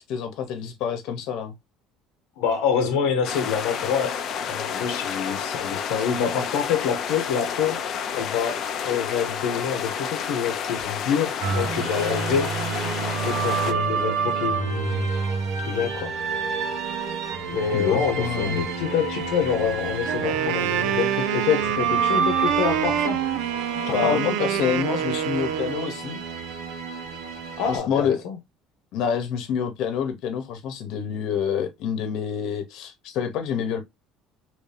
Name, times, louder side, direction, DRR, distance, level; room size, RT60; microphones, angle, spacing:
voice 1, 0.1-1.5 17.7-18.6 23.9-26.2 27.7-28.2 28.9-33.8, left 7 dB, 60° left, 1.0 m, -27 dB
voice 2, 2.4-12.6 13.2-15.1 15.7-16.2 17.5-23.2 23.9-24.4 27.6-28.4, left 7 dB, 85° left, 0.8 m, -26 dB
sound 1, 3.2-13.7, left 7 dB, 40° left, 0.5 m, -30 dB
sound 2, 11.4-27.8, right 5 dB, 70° right, 1.2 m, -29 dB
Wind instrument woodwind instrument, 20.1-25.9, right 11 dB, 85° right, 0.3 m, -27 dB
3.0 x 2.8 x 3.3 m
cardioid pair, 160°, 0 cm